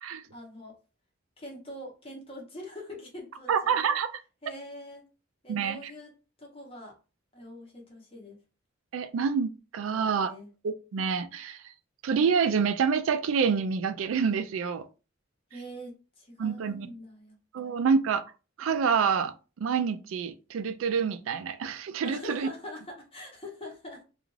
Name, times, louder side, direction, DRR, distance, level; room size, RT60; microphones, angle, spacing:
voice 1, 0.3-0.8 1.4-3.8 4.4-5.0 5.4-6.1 6.4-7.0 7.3-8.4 9.8-10.5 15.5-17.4 22.0-24.0, left 1 dB, 30° left, 0.9 m, -43 dB
voice 2, 3.5-4.2 5.5-5.9 8.9-10.3 10.6-11.6 12.0-14.9 16.4-16.9 17.5-18.2 18.6-22.5, right 6 dB, 80° right, 0.4 m, -27 dB
2.4 x 2.3 x 3.1 m
head